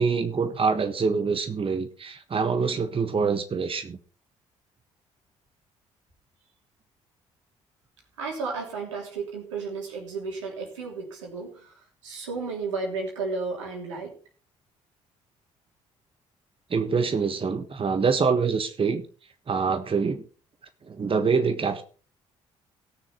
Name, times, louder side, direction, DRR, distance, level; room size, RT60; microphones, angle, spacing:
voice 1, 0.0-4.0 16.7-19.1 19.5-20.2 20.9-21.8, right 5 dB, 35° right, 8 dB, 1.3 m, -25 dB
voice 2, 8.2-14.2, right 4 dB, 85° right, 0 dB, 3.2 m, -33 dB
18.0 x 6.5 x 4.3 m, 0.39 s
hypercardioid pair, 45°, 15 cm